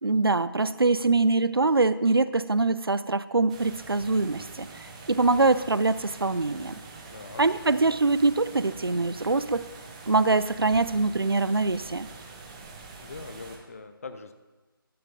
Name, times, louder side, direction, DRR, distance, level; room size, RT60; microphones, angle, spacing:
voice 1, 0.0-4.7 5.1-6.7 7.4-9.6 10.1-12.1, right 3 dB, 80° right, 16 dB, 0.5 m, -23 dB
sound 1, 3.5-13.6, right 3 dB, 15° right, 0.9 m, -45 dB
voice 2, 7.1-7.4 13.0-14.3, left 4 dB, 40° left, 8 dB, 0.7 m, -41 dB
13.5 x 11.5 x 2.6 m, 1.2 s
figure-of-eight pair, 155°, 12 cm